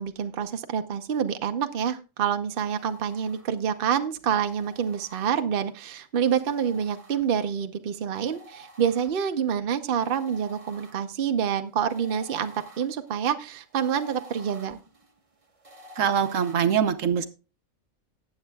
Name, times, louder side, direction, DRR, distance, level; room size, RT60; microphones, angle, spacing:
voice 1, 0.0-14.8, right 8 dB, 45° right, 8 dB, 0.8 m, -27 dB
sound 1, 2.5-3.8 4.4-5.7 6.3-7.6 8.1-9.5 10.0-16.6, right 1 dB, 25° right, 1.4 m, -50 dB
voice 2, 16.0-17.3, right 7 dB, 70° right, 10 dB, 1.1 m, -23 dB
19.0 x 7.9 x 2.3 m, 0.32 s
omnidirectional pair, 1.4 m